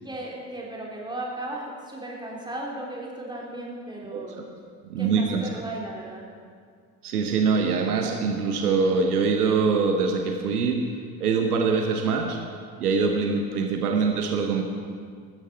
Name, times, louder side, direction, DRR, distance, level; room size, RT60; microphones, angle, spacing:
voice 1, 0.0-4.4 5.0-6.2, right 1 dB, 10° right, -3 dB, 3.9 m, -36 dB
voice 2, 4.9-5.5 7.0-12.4 12.8-14.6, right 5 dB, 75° right, 4 dB, 1.1 m, -24 dB
16.0 x 13.0 x 4.6 m, 2.1 s
figure-of-eight pair, 55°, 45 cm